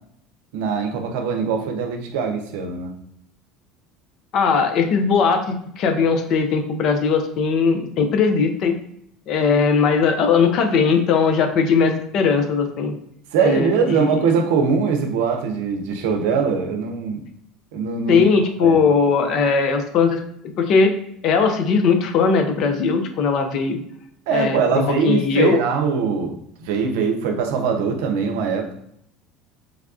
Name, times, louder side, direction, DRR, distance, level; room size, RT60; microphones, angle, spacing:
voice 1, 0.5-2.9 13.3-17.2 17.7-18.2 18.6-18.8 24.3-26.3 26.6-28.7, right 5 dB, 80° right, 4 dB, 0.6 m, -22 dB
voice 2, 4.3-8.8 9.3-12.9 13.4-14.2 18.1-20.2 20.6-21.0 21.2-23.8 24.3-25.6, left 5 dB, 60° left, 6 dB, 0.5 m, -19 dB
3.4 x 2.3 x 2.4 m, 0.71 s
hypercardioid pair, 85°, 0 cm